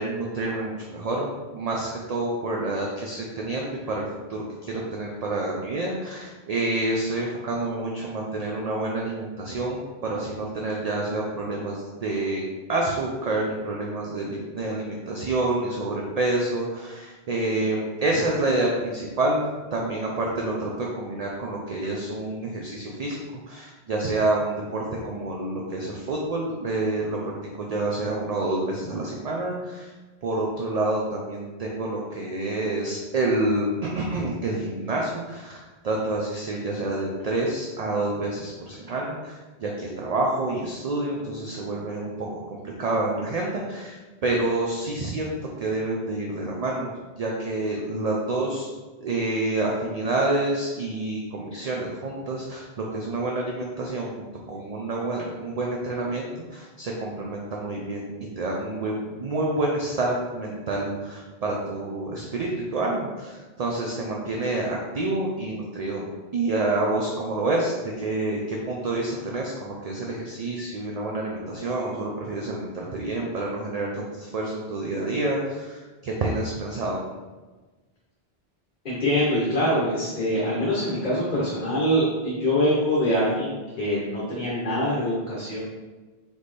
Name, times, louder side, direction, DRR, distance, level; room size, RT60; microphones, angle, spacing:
voice 1, 0.0-19.4 19.7-23.2 23.5-29.9 30.2-45.3 45.6-46.9 47.2-48.7 49.0-66.0 66.3-77.0, right 2 dB, 50° right, -2 dB, 0.5 m, -28 dB
voice 2, 78.8-85.6, equal, 50° left, -6 dB, 1.0 m, -24 dB
4.1 x 3.4 x 3.2 m, 1.3 s
omnidirectional pair, 1.1 m